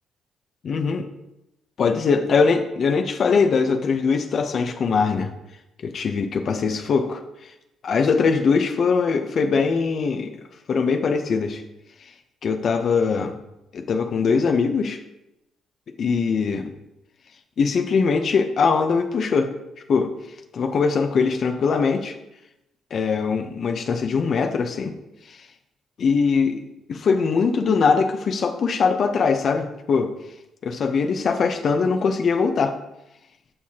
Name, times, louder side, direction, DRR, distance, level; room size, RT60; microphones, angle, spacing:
voice 1, 0.6-1.1 1.8-5.3 5.8-7.2 7.8-10.3 10.7-11.6 12.4-13.3 13.7-15.0 16.0-16.7 17.6-19.5 19.9-20.1 20.5-22.1 22.9-24.9 25.3-25.5 26.0-30.1 30.6-32.7, left 5 dB, 55° left, 5 dB, 0.8 m, -21 dB
11.0 x 5.7 x 2.9 m, 0.89 s
cardioid pair, 90°, 0 cm